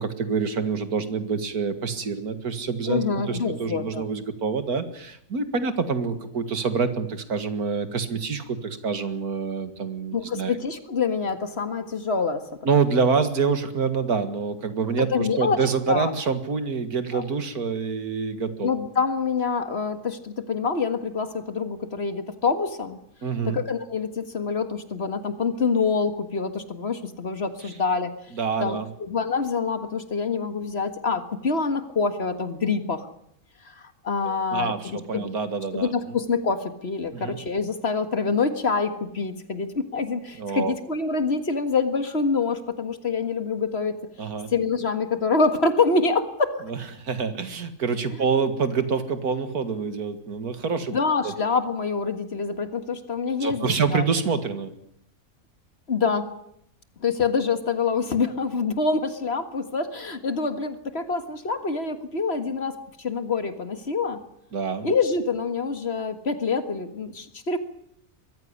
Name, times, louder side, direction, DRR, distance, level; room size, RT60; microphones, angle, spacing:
voice 1, 0.0-10.5 12.6-18.7 23.2-23.6 28.3-28.9 34.2-35.9 37.1-37.4 40.3-40.7 44.2-44.5 46.7-50.9 51.2-51.3 53.4-54.7 64.5-64.9, right 5 dB, 70° right, 10 dB, 2.3 m, -26 dB
voice 2, 2.9-4.0 10.1-12.4 15.0-15.6 15.9-16.1 17.1-17.2 18.6-23.0 23.5-28.1 28.6-33.1 33.6-35.3 35.7-44.0 44.5-46.6 50.9-54.0 55.9-56.3 57.0-64.2 64.8-67.6, left 4 dB, 45° left, 9 dB, 1.9 m, -26 dB
22.5 x 15.0 x 10.0 m, 0.76 s
omnidirectional pair, 1.6 m